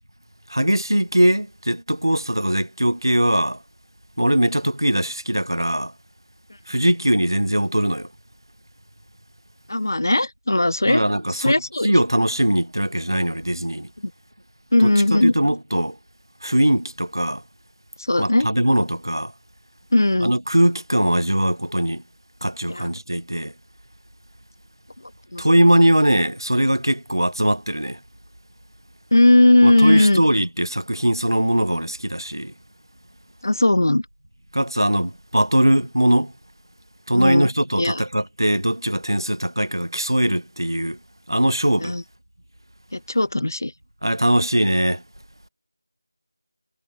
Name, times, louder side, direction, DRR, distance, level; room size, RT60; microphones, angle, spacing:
voice 1, 0.5-3.6 4.2-5.9 6.7-8.1 10.8-11.6 11.8-13.9 14.8-16.0 16.4-17.4 18.2-19.3 20.2-22.0 22.4-23.5 25.4-28.0 29.6-32.5 34.5-36.3 37.1-41.0 41.3-41.9 44.0-45.0, right 1 dB, 80° right, 1.1 m, -20 dB
voice 2, 9.7-11.0 11.3-11.9 14.0-14.1 14.7-15.3 18.1-18.5 19.9-20.3 22.7-22.9 25.3-25.4 29.1-30.2 33.4-34.0 37.1-37.5 37.8-38.0 41.8-42.0 42.9-43.7, left 1 dB, 55° left, 2.9 m, -18 dB
figure-of-eight pair, 170°, 2 cm